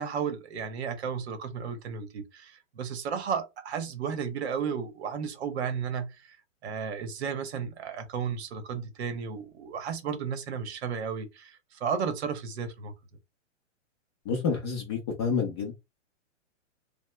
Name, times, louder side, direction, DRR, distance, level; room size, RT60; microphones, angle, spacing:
voice 1, 0.0-6.4 6.6-12.9, right 6 dB, 55° right, 0.8 m, -33 dB
voice 2, 14.2-15.7, left 5 dB, 20° left, 0.4 m, -29 dB
2.8 x 2.1 x 3.2 m
hypercardioid pair, 150°, 38 cm